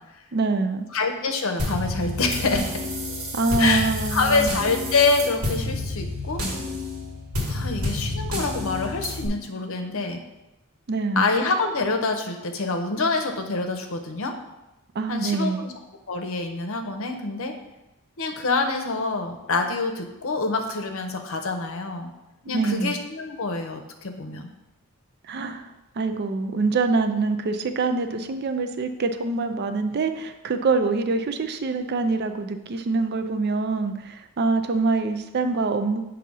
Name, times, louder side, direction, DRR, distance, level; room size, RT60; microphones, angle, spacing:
voice 1, 0.3-0.8 3.3-4.5 10.9-11.3 15.0-15.7 22.5-22.9 25.3-25.7 26.0-36.0, right 3 dB, 50° right, 8 dB, 0.4 m, -25 dB
voice 2, 0.9-2.9 3.6-6.5 7.5-10.2 11.2-14.4 15.1-15.7 16.1-17.5 18.2-22.1 22.5-24.5, left 3 dB, 65° left, 4 dB, 0.7 m, -26 dB
sound 1, 1.6-9.3, left 1 dB, 75° right, 1.5 m, -29 dB
7.5 x 2.8 x 5.4 m, 0.95 s
head